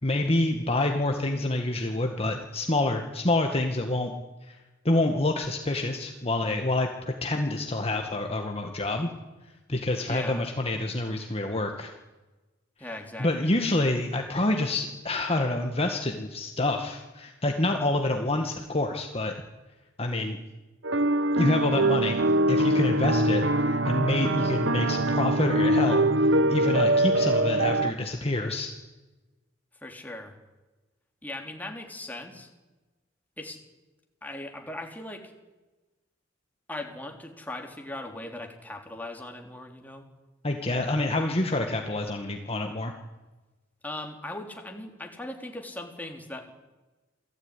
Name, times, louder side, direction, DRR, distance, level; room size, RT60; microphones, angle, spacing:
voice 1, 0.0-4.1 4.5-4.6 4.9-9.1 9.7-11.9 13.2-19.3 20.0-20.4 21.4-28.7 40.4-42.9, left 2 dB, 30° left, 3 dB, 1.9 m, -27 dB
voice 2, 10.1-10.5 12.8-13.5 29.7-30.4 31.2-32.5 33.4-33.6 34.2-35.3 36.7-40.1 43.8-46.5, left 1 dB, 10° left, 3 dB, 3.6 m, -39 dB
sound 1, 20.8-27.9, right 1 dB, 70° right, 1.1 m, -23 dB
28.0 x 18.5 x 9.9 m, 1.2 s
head